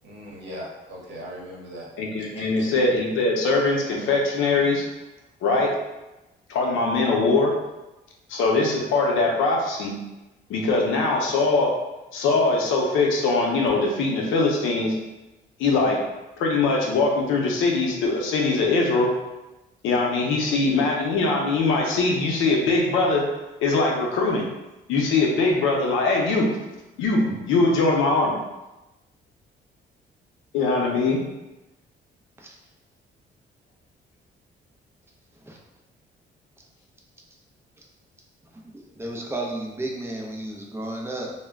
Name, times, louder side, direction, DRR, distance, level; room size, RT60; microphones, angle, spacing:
voice 1, 0.0-1.9 2.3-2.7, equal, 65° right, -3 dB, 0.9 m, -39 dB
voice 2, 2.0-4.8 5.4-5.7 6.5-7.5 8.3-9.9 10.5-11.7 12.1-15.0 15.6-16.0 16.4-19.1 19.8-23.2 23.6-24.4 24.9-26.5 27.0-28.3 30.5-31.2, left 3 dB, 85° left, 0 dB, 0.6 m, -22 dB
voice 3, 38.5-41.3, right 1 dB, 10° right, -1 dB, 0.5 m, -33 dB
2.1 x 2.1 x 3.4 m, 1.0 s
cardioid pair, 90°, 20 cm